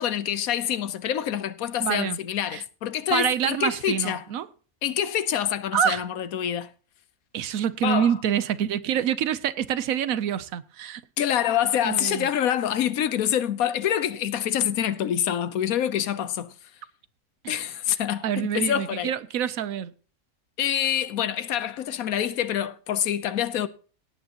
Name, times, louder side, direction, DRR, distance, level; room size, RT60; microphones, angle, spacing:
voice 1, 0.0-4.2 4.8-6.7 7.8-8.1 11.2-16.5 17.5-19.1 20.6-23.7, left 10 dB, 75° left, 1.2 m, -26 dB
voice 2, 1.8-2.2 2.5-2.6 3.1-4.5 5.7-6.0 7.3-11.0 11.8-12.3 18.2-19.9, right 9 dB, 75° right, 1.1 m, -26 dB
17.0 x 9.5 x 2.9 m
omnidirectional pair, 1.5 m